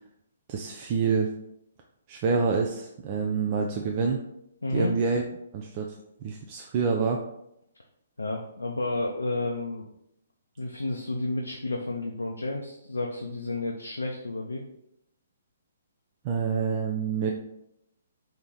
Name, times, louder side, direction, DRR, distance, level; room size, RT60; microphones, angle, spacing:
voice 1, 0.5-1.3 2.1-4.2 4.7-5.2 5.5-5.9 6.2-7.2 16.2-17.3, right 5 dB, 35° right, 1 dB, 0.4 m, -27 dB
voice 2, 4.6-4.9 8.2-9.9 10.6-14.6, left 2 dB, 80° left, 1 dB, 0.4 m, -31 dB
3.0 x 2.8 x 3.7 m, 0.79 s
figure-of-eight pair, 125°, 0 cm